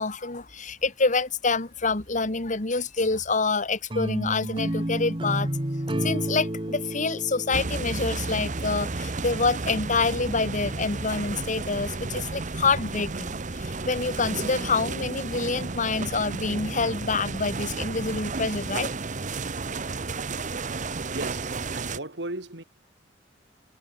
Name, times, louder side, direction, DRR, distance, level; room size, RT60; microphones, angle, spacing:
voice 1, 0.0-5.5 6.0-18.9, left 4 dB, 45° left, 1.9 m, -27 dB
sound 1, 3.9-9.0, right 1 dB, 30° right, 2.0 m, -31 dB
sound 2, 7.5-22.0, right 3 dB, 45° right, 1.1 m, -32 dB
voice 2, 21.0-22.6, right 2 dB, 70° right, 3.7 m, -36 dB
head